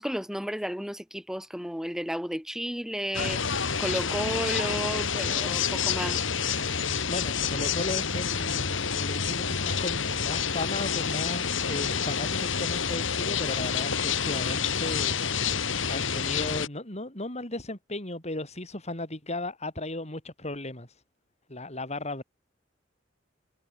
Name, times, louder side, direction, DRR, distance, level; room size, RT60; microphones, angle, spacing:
voice 1, 0.0-3.4 3.8-6.2, equal, 5° right, 7.7 m, -32 dB
sound 1, 3.1-16.7, left 6 dB, 85° left, 2.5 m, -28 dB
voice 2, 7.1-21.0 21.5-22.2, left 2 dB, 35° left, 6.7 m, -36 dB
head